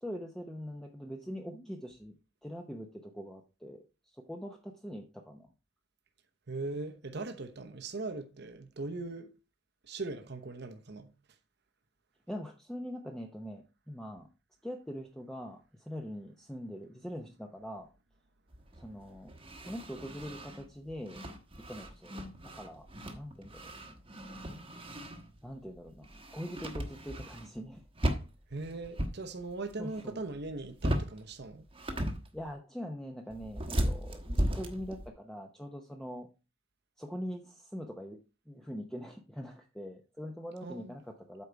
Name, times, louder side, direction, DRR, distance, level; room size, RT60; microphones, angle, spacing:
voice 1, 0.0-5.5 12.3-14.3 14.6-17.9 18.7-19.3 19.7-21.2 21.7-22.9 23.1-23.7 25.4-27.8 29.8-30.2 32.3-36.3 37.0-38.2 38.5-41.4, equal, 5° left, 0.8 m, -43 dB
voice 2, 6.5-9.3 9.8-11.1 28.5-31.6 40.6-40.9, right 3 dB, 60° right, 1.0 m, -40 dB
sound 1, 18.5-25.5 25.8-27.7 27.9-29.2 29.5-30.1 30.3-31.2 31.6-32.5 33.3-35.1, equal, 25° right, 1.2 m, -36 dB
8.3 x 5.4 x 4.6 m
head